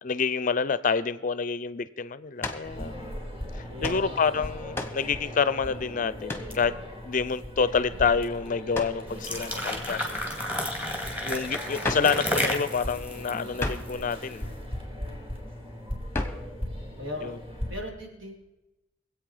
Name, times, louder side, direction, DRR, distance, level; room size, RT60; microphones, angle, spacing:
voice 1, 0.0-3.2 3.5-6.8 7.0-10.2 11.2-14.5 17.2-17.4, left 5 dB, 45° left, 17 dB, 0.5 m, -28 dB
sound 1, 2.4-2.7 3.8-4.1 4.7-5.1 6.3-6.6 8.7-9.0 11.8-12.2 13.6-14.0 16.1-16.5, left 2 dB, 10° left, 1.0 m, -32 dB
sound 2, 2.6-17.7, equal, 30° right, 3.8 m, -39 dB
voice 2, 3.7-4.2 17.0-17.3 17.7-18.4, left 1 dB, 80° right, -1 dB, 4.0 m, -37 dB
sound 3, 9.1-14.3, left 1 dB, 10° right, 2.1 m, -32 dB
23.5 x 8.3 x 4.9 m, 1.0 s
head